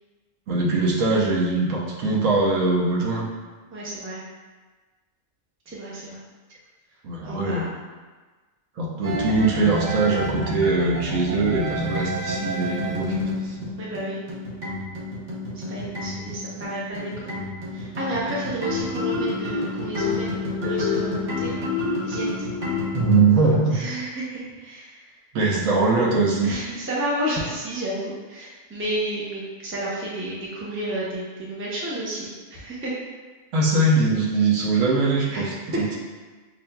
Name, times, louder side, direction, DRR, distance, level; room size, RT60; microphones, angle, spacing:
voice 1, 0.5-3.3 7.0-7.7 8.8-13.6 22.9-23.8 25.3-26.5 33.5-35.5, right 3 dB, 80° right, -4 dB, 1.1 m, -21 dB
voice 2, 3.7-4.2 5.7-6.2 7.2-7.7 12.4-12.7 13.8-14.2 15.7-17.5 17.7-21.6 22.0-22.3 23.7-25.2 26.4-32.9 35.3-36.0, right 1 dB, 15° right, -5 dB, 0.4 m, -31 dB
sound 1, 9.0-23.2, left 2 dB, 40° right, 0.8 m, -29 dB
5.6 x 2.5 x 2.2 m, 1.3 s
omnidirectional pair, 1.3 m